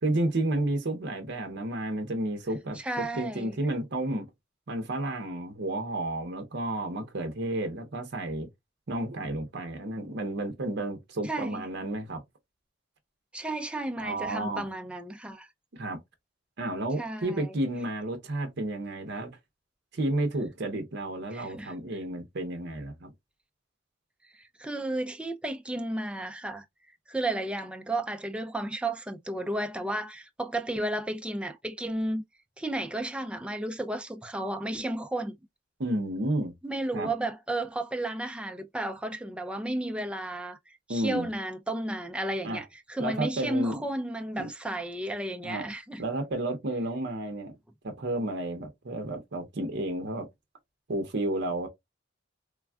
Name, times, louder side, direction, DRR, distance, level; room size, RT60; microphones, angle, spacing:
voice 1, 0.0-4.3 4.7-8.5 8.9-12.2 14.0-14.6 15.7-16.0 16.6-19.3 19.9-23.1 35.8-36.5 36.9-37.1 40.9-41.3 42.4-42.6 43.0-43.8 44.4-44.5 45.4-45.6 46.0-47.6 47.8-50.3 50.9-51.7, right 1 dB, 60° right, 0.7 m, -31 dB
voice 2, 2.7-3.6 11.2-11.7 13.3-15.5 17.0-17.5 21.3-21.7 24.3-26.6 27.1-32.2 32.6-35.4 36.6-46.0, right 1 dB, 5° right, 0.3 m, -33 dB
3.3 x 2.3 x 2.2 m
head